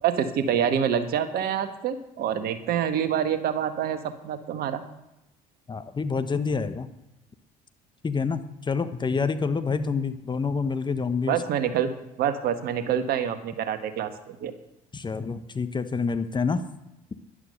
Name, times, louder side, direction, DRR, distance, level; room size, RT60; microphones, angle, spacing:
voice 1, 0.0-4.8 11.3-11.9 12.2-14.5, right 9 dB, 55° right, 9 dB, 1.6 m, -26 dB
voice 2, 5.7-6.9 8.0-11.4 14.9-16.6, left 5 dB, 25° left, 10 dB, 1.2 m, -27 dB
12.5 x 11.5 x 6.7 m, 0.90 s
figure-of-eight pair, 55°, 19 cm